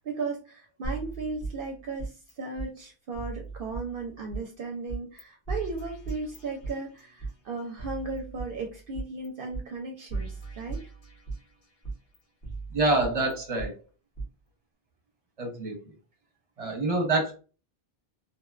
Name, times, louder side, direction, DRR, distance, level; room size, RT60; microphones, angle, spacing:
voice 1, 0.0-10.8, right 3 dB, 65° right, 1 dB, 0.7 m, -36 dB
sound 1, 0.8-2.3 2.6-2.7 3.2-4.4 4.9-5.2 5.5-7.3 7.8-9.3 9.5-9.6 10.1-11.5 11.8-13.7 14.2-14.3, right 3 dB, 80° left, 1.1 m, -37 dB
voice 2, 12.7-13.7 15.4-15.8 16.6-17.3, right 2 dB, 40° right, 3 dB, 0.8 m, -26 dB
2.6 x 2.1 x 2.3 m, 0.34 s
omnidirectional pair, 1.0 m